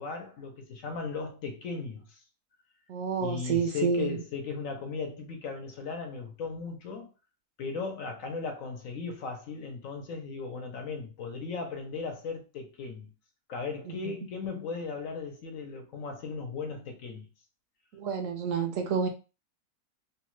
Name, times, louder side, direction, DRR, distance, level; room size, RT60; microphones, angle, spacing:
voice 1, 0.0-2.1 3.2-7.1 7.6-13.1 13.5-17.3, left 4 dB, 65° left, 1.1 m, -37 dB
voice 2, 2.9-4.2 13.9-14.0 17.9-19.1, right 6 dB, 70° right, 0.9 m, -29 dB
3.1 x 2.3 x 3.0 m
omnidirectional pair, 1.6 m